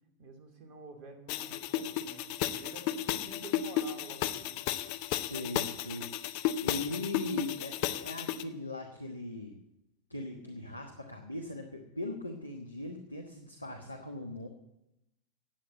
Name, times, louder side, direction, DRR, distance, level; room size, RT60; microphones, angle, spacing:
voice 1, 0.2-4.6, right 3 dB, 40° right, 5 dB, 2.8 m, -50 dB
sound 1, 1.3-8.4, left 12 dB, 45° left, 0.8 m, -34 dB
voice 2, 4.9-6.1 6.6-9.6 10.1-14.5, left 1 dB, 85° left, 4 dB, 1.2 m, -40 dB
13.0 x 8.7 x 8.0 m, 0.90 s
figure-of-eight pair, 90°, 0 cm